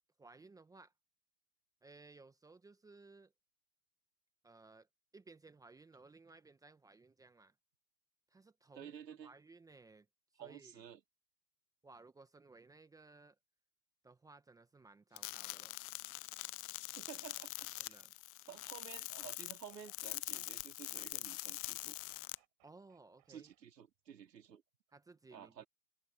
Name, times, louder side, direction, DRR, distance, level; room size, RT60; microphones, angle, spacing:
voice 1, 0.2-0.9 1.8-3.3 4.4-4.9 5.1-7.5 8.3-8.9 9.2-10.1 10.3-10.8 11.8-13.3 14.0-15.7 17.8-18.1 22.6-23.5 24.9-25.6, right 3 dB, 5° right, 1.3 m, -59 dB
voice 2, 8.8-9.3 10.4-11.0 16.9-18.0 18.5-22.0 23.3-24.6 25.3-25.7, right 8 dB, 75° right, 3.4 m, -52 dB
sound 1, 15.2-22.4, left 26 dB, 25° left, 0.5 m, -44 dB
sound 2, 19.1-19.3 19.7-20.5 20.9-21.1 21.4-24.0, right 26 dB, 35° right, 5.0 m, -71 dB
hypercardioid pair, 125°, 50 cm